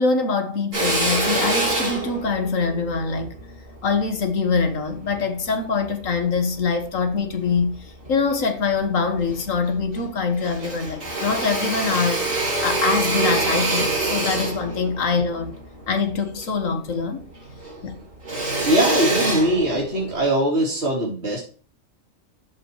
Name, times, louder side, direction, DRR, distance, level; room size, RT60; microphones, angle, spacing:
voice 1, 0.0-3.3 3.8-15.6 15.9-17.2 17.8-18.0, left 4 dB, 85° left, 1.8 m, -24 dB
Drill, 0.7-5.3 5.8-7.0 7.5-8.4 8.8-8.9 9.1-10.1 10.4-17.1 17.3-20.2, right 2 dB, 90° right, 5.3 m, -26 dB
voice 2, 18.6-21.4, right 1 dB, 55° right, 3.9 m, -21 dB
13.5 x 5.5 x 3.1 m
omnidirectional pair, 1.3 m